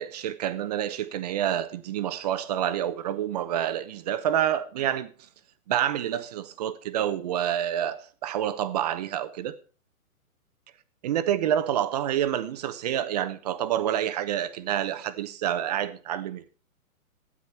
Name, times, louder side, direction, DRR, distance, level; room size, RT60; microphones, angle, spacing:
voice 1, 0.0-5.3 5.7-9.6 11.0-16.5, right 11 dB, 30° right, 0.7 m, -28 dB
12.0 x 9.7 x 4.3 m
hypercardioid pair, 150°, 43 cm